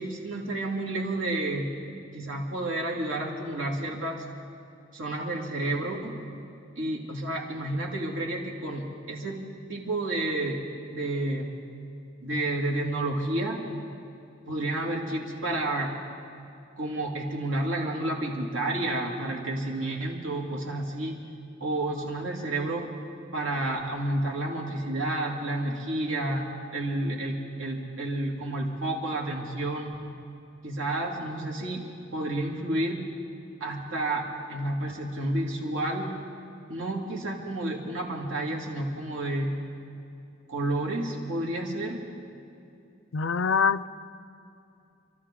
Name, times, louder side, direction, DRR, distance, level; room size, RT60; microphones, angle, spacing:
voice 1, 0.0-4.2 4.9-6.1 6.8-9.4 9.7-10.6 10.9-11.5 12.2-13.6 14.4-15.9 16.8-21.2 21.6-22.9 23.3-29.9 30.6-31.8 32.1-33.0 33.6-36.1 36.7-39.5 40.5-42.0, right 1 dB, 90° right, -1 dB, 2.5 m, -30 dB
voice 2, 43.1-43.9, left 6 dB, 75° left, 15 dB, 0.5 m, -24 dB
27.5 x 13.5 x 3.7 m, 2.6 s
head